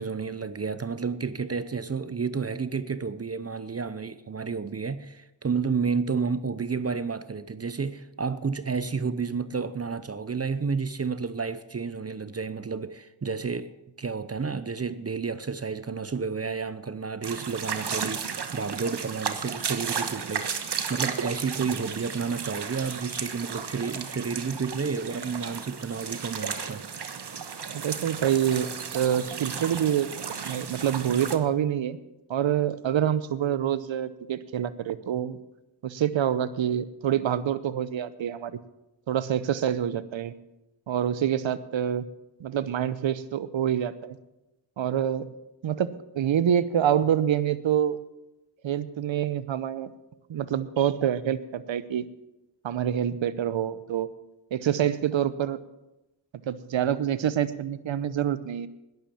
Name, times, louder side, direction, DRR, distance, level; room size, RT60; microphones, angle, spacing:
voice 1, 0.0-20.6 20.9-26.8, right 5 dB, 30° right, 0.7 m, -31 dB
sound 1, 17.2-31.4, right 6 dB, 60° right, 1.3 m, -34 dB
voice 2, 27.7-28.7 28.9-32.0 32.3-35.4 35.8-38.5 39.1-40.3 40.9-42.1 42.4-44.2 44.8-45.3 45.6-45.9 46.2-48.0 48.6-49.9 50.3-52.1 52.6-54.1 54.5-55.6 56.5-58.7, right 9 dB, 75° right, 0.8 m, -26 dB
11.5 x 10.5 x 7.1 m
cardioid pair, 55°, 47 cm